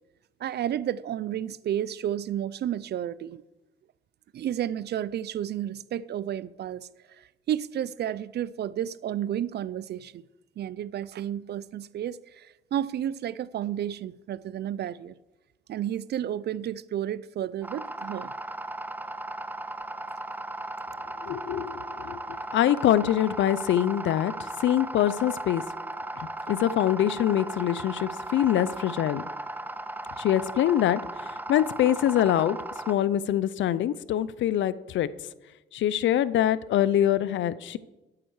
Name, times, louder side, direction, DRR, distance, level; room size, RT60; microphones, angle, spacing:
voice 1, 0.4-3.4 4.3-6.9 7.2-10.2 10.6-15.1 15.7-18.3, right 10 dB, 55° right, 0.5 m, -32 dB
sound 1, 17.6-32.9, right 2 dB, 10° right, 0.5 m, -36 dB
voice 2, 21.2-25.6 26.2-29.2 30.2-32.6 32.9-35.1 35.7-37.8, left 11 dB, 70° left, 0.6 m, -24 dB
12.5 x 8.7 x 4.8 m
cardioid pair, 90°, 20 cm